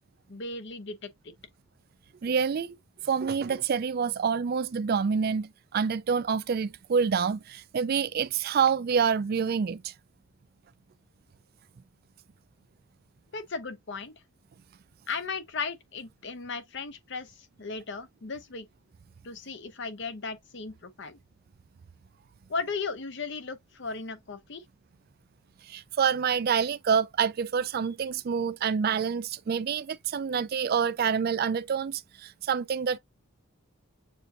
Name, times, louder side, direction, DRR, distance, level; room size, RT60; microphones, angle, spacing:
voice 1, 0.3-1.3 13.3-14.1 15.1-18.7 19.2-21.2 22.5-24.6, left 4 dB, 60° left, 0.8 m, -36 dB
voice 2, 2.2-2.8 3.0-9.9 25.7-33.0, right 6 dB, 45° right, 0.3 m, -27 dB
6.8 x 2.7 x 2.4 m
head